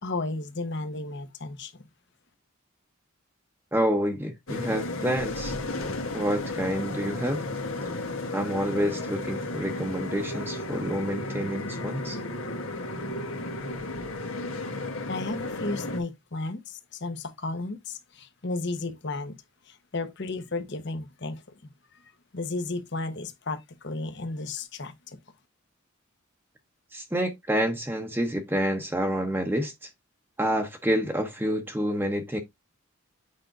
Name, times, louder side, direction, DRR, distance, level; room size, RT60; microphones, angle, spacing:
voice 1, 0.0-1.7 15.1-19.4 19.7-25.2, left 2 dB, 55° left, 1.1 m, -34 dB
voice 2, 3.7-5.5 6.1-7.4 8.3-12.2 26.9-29.9 30.4-32.4, equal, 10° right, 0.8 m, -28 dB
sound 1, 4.5-16.0, left 2 dB, 80° left, 1.4 m, -33 dB
8.4 x 5.1 x 2.5 m
head